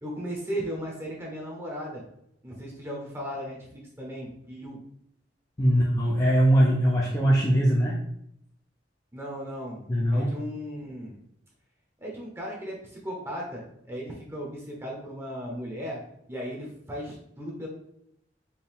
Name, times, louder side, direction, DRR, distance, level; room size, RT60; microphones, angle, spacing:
voice 1, 0.0-2.0 2.4-4.8 9.1-9.8 10.1-11.2 12.0-16.0 16.3-17.7, equal, 15° right, -2 dB, 0.9 m, -36 dB
voice 2, 5.6-8.0 9.9-10.3, equal, 20° left, -4 dB, 0.6 m, -21 dB
4.5 x 2.7 x 3.5 m, 0.73 s
head